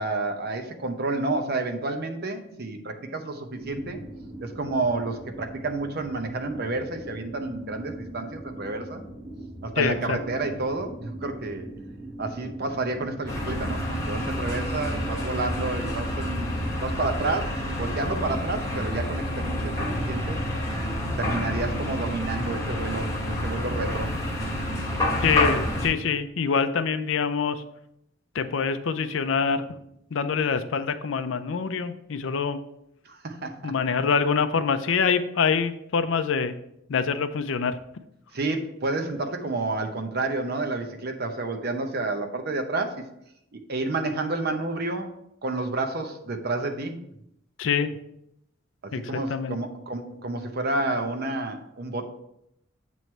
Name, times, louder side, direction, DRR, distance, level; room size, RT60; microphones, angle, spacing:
voice 1, 0.0-4.0 4.4-9.0 9.6-11.7 12.2-16.5 16.8-20.4 21.2-24.1 33.1-33.7 38.3-43.0 43.5-45.1 45.4-47.0 48.8-52.1, right 2 dB, 55° right, 6 dB, 0.7 m, -30 dB
sound 1, 3.5-18.9, right 1 dB, 30° right, 1.3 m, -41 dB
voice 2, 9.8-10.2 25.2-27.6 28.3-29.6 30.1-32.6 33.6-36.5 36.9-37.8 47.6-48.0 48.9-49.6, left 6 dB, 75° left, 11 dB, 0.5 m, -25 dB
sound 2, 13.3-25.9, left 1 dB, 15° left, 1.0 m, -28 dB
7.8 x 3.1 x 4.4 m, 0.78 s
head